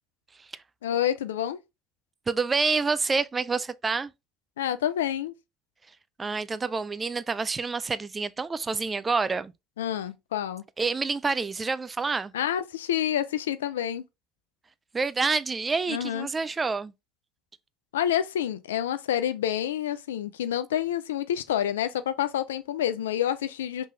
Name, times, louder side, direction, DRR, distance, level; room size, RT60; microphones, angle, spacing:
voice 1, 0.8-1.6 4.6-5.3 9.8-10.6 12.3-14.0 15.9-16.3 17.9-23.9, left 10 dB, 80° left, 0.3 m, -28 dB
voice 2, 2.3-4.1 6.2-9.5 10.8-12.3 14.9-16.9, right 4 dB, 25° right, 0.3 m, -27 dB
3.3 x 2.9 x 3.2 m
hypercardioid pair, 65°, 0 cm